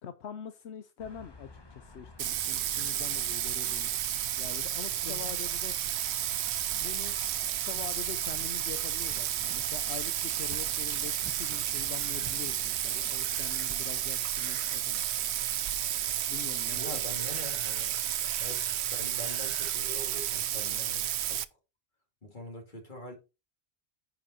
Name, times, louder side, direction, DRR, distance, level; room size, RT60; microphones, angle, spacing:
voice 1, 0.0-3.9 4.4-5.7 6.7-7.1 7.5-15.0 16.3-17.0, left 8 dB, 85° left, 1.0 m, -44 dB
sound 1, 1.0-13.0, left 3 dB, 25° left, 1.1 m, -53 dB
Bathtub (filling or washing), 2.2-21.4, right 11 dB, 90° right, 0.9 m, -32 dB
voice 2, 5.0-5.3 16.7-18.0 18.4-21.4 22.2-23.2, left 2 dB, 50° left, 2.7 m, -44 dB
sound 2, 7.9-15.7 16.0-16.6 17.1-19.7 20.6-20.7 21.0-21.1, right 3 dB, 30° right, 1.0 m, -52 dB
9.8 x 5.1 x 4.2 m
omnidirectional pair, 1.1 m